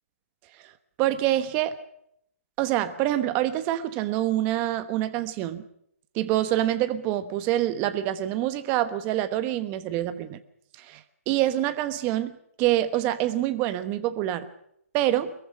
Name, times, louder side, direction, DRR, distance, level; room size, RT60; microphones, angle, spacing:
voice 1, 1.0-1.8 2.6-5.6 6.1-10.4 10.8-12.3 12.6-14.5 14.9-15.3, right 13 dB, 20° right, 11 dB, 1.2 m, -26 dB
22.5 x 22.0 x 6.0 m, 0.72 s
hypercardioid pair, 160°, 8 cm